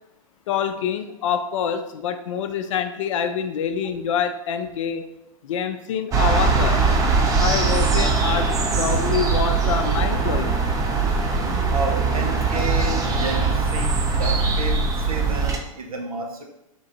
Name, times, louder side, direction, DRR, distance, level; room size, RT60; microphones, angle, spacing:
voice 1, 0.5-5.1 5.4-6.8 7.4-8.5 8.8-10.5, left 8 dB, 60° left, 8 dB, 0.5 m, -26 dB
sound 1, 6.1-15.6, right 4 dB, 20° right, 0.5 m, -21 dB
voice 2, 11.7-16.4, right 2 dB, 80° right, 2 dB, 0.8 m, -31 dB
3.8 x 2.4 x 4.0 m, 0.88 s
hypercardioid pair, 105°, 18 cm